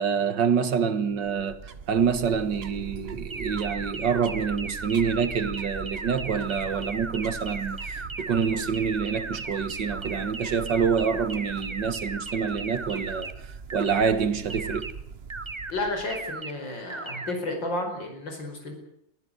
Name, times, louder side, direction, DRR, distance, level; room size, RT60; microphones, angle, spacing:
voice 1, 0.0-13.3 13.7-14.9, right 6 dB, 75° right, 2.1 m, -26 dB
sound 1, 1.1-16.4, right 5 dB, 40° right, 1.1 m, -42 dB
sound 2, 3.3-13.3 13.7-14.1 14.5-14.9 15.3-15.7 16.1-16.5 16.9-17.3, right 3 dB, 20° right, 0.8 m, -36 dB
voice 2, 15.7-18.7, left 2 dB, 90° left, 5.7 m, -32 dB
23.0 x 15.0 x 9.6 m
omnidirectional pair, 2.0 m